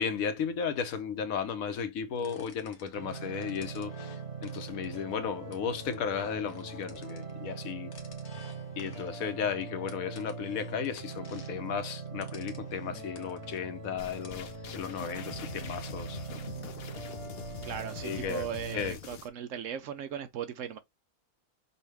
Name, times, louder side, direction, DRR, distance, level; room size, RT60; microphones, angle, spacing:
voice 1, 0.0-7.9 8.8-16.2 18.0-18.5 18.7-19.0, left 7 dB, 75° left, 1.2 m, -35 dB
sound 1, 2.2-14.5, left 4 dB, 90° left, 1.4 m, -54 dB
sound 2, 2.9-18.9, right 4 dB, 25° right, 0.9 m, -42 dB
sound 3, 14.0-19.3, left 8 dB, 60° left, 0.7 m, -44 dB
voice 2, 17.6-20.8, right 9 dB, 70° right, 0.9 m, -38 dB
5.4 x 2.4 x 3.2 m
omnidirectional pair, 1.5 m